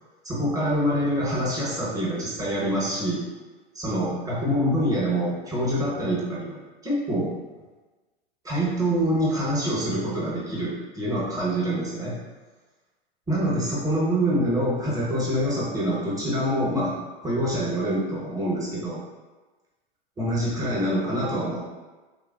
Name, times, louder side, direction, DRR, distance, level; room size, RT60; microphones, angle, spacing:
voice 1, 0.2-3.2 3.7-7.3 8.4-12.2 13.3-17.0 17.2-19.0 20.2-21.7, equal, 10° right, -6 dB, 0.8 m, -25 dB
3.3 x 2.1 x 2.2 m, 1.2 s
hypercardioid pair, 110°, 31 cm